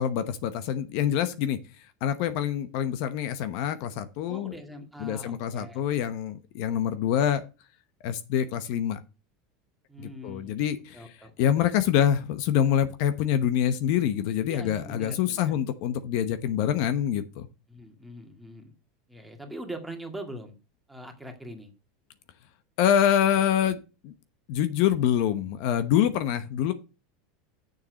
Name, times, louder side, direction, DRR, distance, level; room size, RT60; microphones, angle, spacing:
voice 1, 0.0-1.6 2.0-4.5 5.0-7.4 8.0-9.0 10.0-11.0 11.4-17.5 22.8-23.8 24.0-24.1 24.5-26.7, left 9 dB, 65° left, 11 dB, 1.0 m, -25 dB
voice 2, 4.3-5.9 9.9-10.6 10.9-11.5 14.5-15.6 17.7-18.7 19.1-20.5 20.9-21.7, right 1 dB, 5° right, 3 dB, 2.0 m, -42 dB
7.2 x 6.7 x 6.2 m, 0.31 s
supercardioid pair, 130°, 0 cm